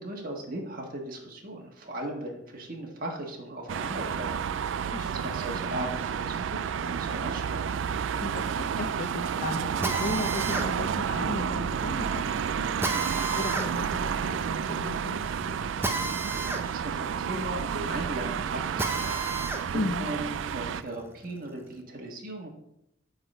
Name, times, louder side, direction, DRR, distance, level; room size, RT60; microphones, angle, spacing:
voice 1, 0.0-7.8 16.3-22.5, right 1 dB, 50° right, -1 dB, 1.6 m, -38 dB
sound 1, 3.7-20.8, right 7 dB, 85° right, 0.3 m, -31 dB
voice 2, 8.2-15.7 19.7-20.1, left 2 dB, 45° left, 4 dB, 0.6 m, -36 dB
Drill, 9.8-19.7 20.1-21.7, right 3 dB, 15° right, 0.7 m, -34 dB
9.2 x 4.0 x 6.6 m, 0.81 s
head